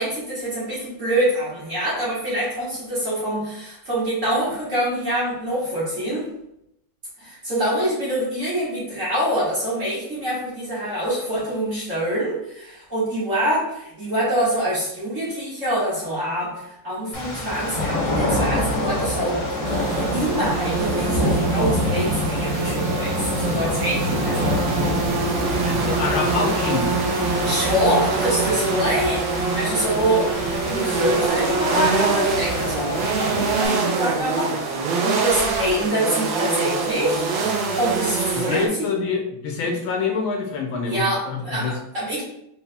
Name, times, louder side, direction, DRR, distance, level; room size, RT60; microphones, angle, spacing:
voice 1, 0.0-6.3 7.2-19.4 19.9-24.6 26.1-26.2 27.4-38.9 40.9-42.2, right 1 dB, 40° right, -8 dB, 2.0 m, -25 dB
sound 1, 17.1-33.7, left 1 dB, 65° left, 1.5 m, -27 dB
sound 2, 19.6-38.7, right 4 dB, 75° right, 1.4 m, -25 dB
voice 2, 25.6-26.9 38.4-41.7, left 5 dB, 80° left, 2 dB, 1.5 m, -26 dB
4.2 x 4.1 x 2.3 m, 0.78 s
omnidirectional pair, 2.2 m